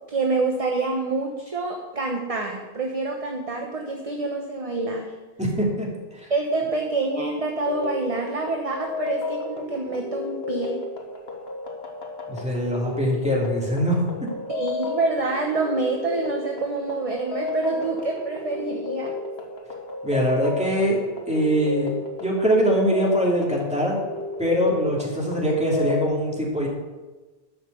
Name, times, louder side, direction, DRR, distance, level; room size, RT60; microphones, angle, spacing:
voice 1, 0.1-5.1 6.3-10.8 14.5-19.1, right 3 dB, 35° right, 1 dB, 1.0 m, -27 dB
voice 2, 5.4-5.9 6.2-6.3 12.3-14.0 20.0-21.0 21.3-21.9 22.2-24.0 24.4-26.7, equal, 5° right, -4 dB, 2.9 m, -22 dB
sound 1, 7.6-26.1, left 3 dB, 85° left, 1.6 m, -33 dB
12.0 x 5.8 x 6.9 m, 1.2 s
omnidirectional pair, 1.0 m